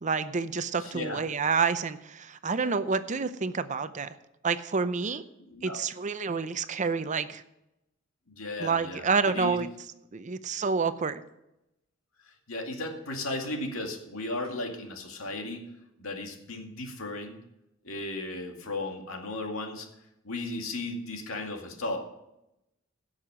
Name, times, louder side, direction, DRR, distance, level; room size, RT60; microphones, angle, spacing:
voice 1, 0.0-4.2 4.4-5.2 5.6-7.4 8.6-9.7 10.1-11.2, right 5 dB, 35° right, 12 dB, 0.6 m, -28 dB
voice 2, 0.8-1.2 5.5-5.8 8.4-9.1 9.3-9.6 12.5-15.7 16.0-17.4 17.8-19.9 20.2-22.0, left 2 dB, 80° left, 2 dB, 2.2 m, -35 dB
17.0 x 6.5 x 4.9 m, 0.88 s
head